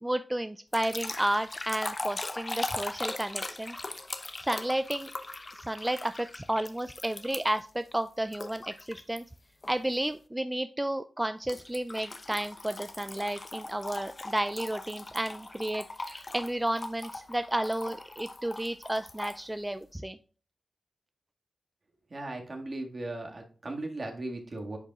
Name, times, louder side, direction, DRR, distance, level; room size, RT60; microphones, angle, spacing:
voice 1, 0.0-3.8 4.4-5.1 5.6-9.2 9.7-20.2, right 1 dB, 15° right, 10 dB, 0.4 m, -32 dB
sound 1, 0.7-7.7 8.3-9.2 9.6-9.9 11.5-19.4, left 2 dB, 40° left, 0.8 m, -40 dB
voice 2, 22.1-24.8, right 2 dB, 50° right, 2 dB, 1.8 m, -37 dB
10.5 x 5.3 x 2.4 m, 0.40 s
cardioid pair, 50°, 0 cm